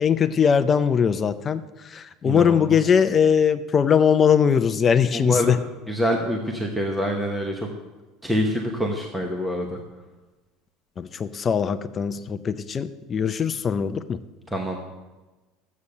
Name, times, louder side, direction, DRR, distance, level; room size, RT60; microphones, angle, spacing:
voice 1, 0.0-5.6 11.0-14.2, left 7 dB, 20° left, 12 dB, 0.4 m, -21 dB
voice 2, 2.2-2.9 5.1-5.5 5.9-7.7 8.2-9.8 14.5-14.8, equal, 5° right, 1 dB, 0.9 m, -26 dB
12.5 x 8.4 x 6.5 m, 1.2 s
cardioid pair, 170°, 0 cm